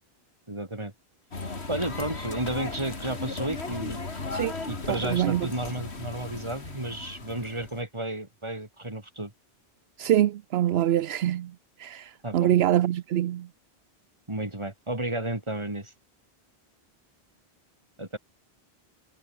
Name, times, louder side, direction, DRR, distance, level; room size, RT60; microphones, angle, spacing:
voice 1, 0.5-0.9 1.7-4.0 4.4-9.3 12.2-12.5 14.3-15.9 18.0-18.2, right 1 dB, 25° right, 3.3 m, -33 dB
sound 1, 1.3-7.8, left 3 dB, 85° left, 3.1 m, -36 dB
voice 2, 4.9-5.5 10.0-13.5, right 12 dB, 75° right, 0.8 m, -25 dB
omnidirectional pair, 1.1 m